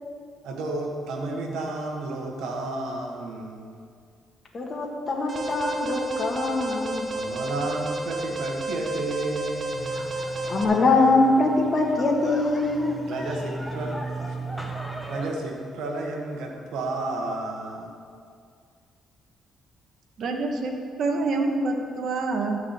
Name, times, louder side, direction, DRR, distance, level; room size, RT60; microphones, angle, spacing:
voice 1, 0.4-3.8 7.1-10.1 13.1-14.7 15.1-17.9, right 2 dB, 85° right, 1 dB, 1.5 m, -32 dB
voice 2, 4.5-7.1 10.5-13.0, left 2 dB, 40° left, -2 dB, 1.7 m, -23 dB
Alarm, 5.3-10.6, right 2 dB, 35° right, 1.3 m, -31 dB
sound 1, 9.7-15.3, right 2 dB, ahead, 1.5 m, -36 dB
voice 3, 20.2-22.6, right 3 dB, 65° right, 3 dB, 1.5 m, -26 dB
13.0 x 4.8 x 8.2 m, 2.2 s
cardioid pair, 90°, 0 cm